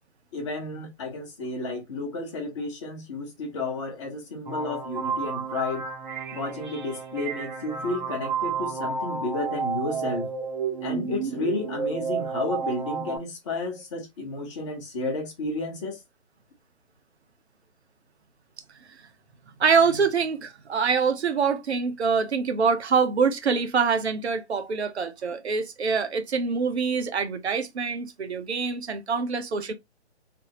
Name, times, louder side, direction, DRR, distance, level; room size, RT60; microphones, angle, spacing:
voice 1, 0.3-5.9 6.3-10.3 10.8-16.0, left 2 dB, 25° left, 0.9 m, -32 dB
sound 1, 4.5-13.2, right 5 dB, 40° right, 0.8 m, -31 dB
voice 2, 19.6-29.7, right 5 dB, 65° right, 0.9 m, -25 dB
3.4 x 2.1 x 2.9 m
figure-of-eight pair, 145°, 35 cm